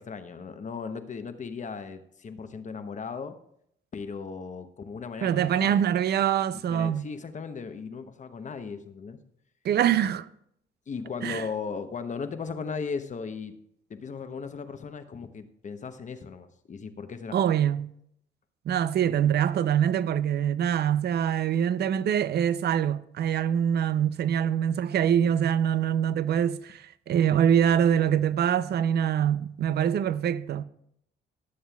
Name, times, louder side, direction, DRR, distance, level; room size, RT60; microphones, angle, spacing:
voice 1, 0.0-3.4 3.9-5.8 6.7-9.2 10.9-13.5 13.9-17.4, left 5 dB, 40° left, 0.9 m, -37 dB
voice 2, 5.2-7.0 9.6-10.3 11.2-11.4 17.3-17.9 18.7-30.6, right 9 dB, 55° right, 0.5 m, -24 dB
18.0 x 7.3 x 2.3 m
cardioid pair, 90°, 20 cm